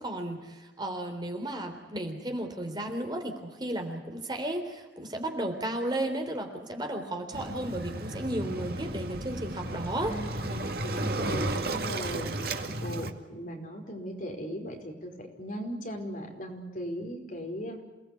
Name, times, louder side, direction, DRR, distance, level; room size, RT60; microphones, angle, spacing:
voice 1, 0.0-10.2 12.7-13.1, right 1 dB, 25° right, 4 dB, 3.7 m, -34 dB
Waves surf, 7.3-13.1, right 2 dB, 55° right, 2.2 m, -33 dB
voice 2, 10.1-17.8, equal, 45° left, 3 dB, 5.0 m, -38 dB
28.5 x 19.5 x 8.5 m, 1.1 s
head